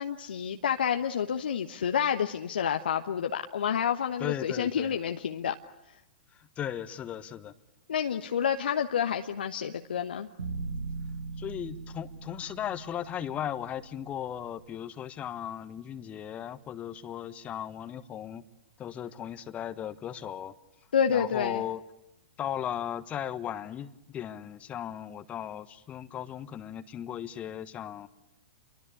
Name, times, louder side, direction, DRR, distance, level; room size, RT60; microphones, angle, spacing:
voice 1, 0.0-5.6 7.9-10.3 20.9-21.6, left 8 dB, 65° left, 1.1 m, -29 dB
voice 2, 4.2-4.9 6.4-7.5 11.4-18.4 18.8-20.5 21.1-21.8 22.4-28.1, left 10 dB, 25° left, 1.3 m, -37 dB
sound 1, 10.4-14.6, right 3 dB, 70° right, 1.7 m, -40 dB
29.5 x 24.0 x 8.5 m
figure-of-eight pair, 105°, 6 cm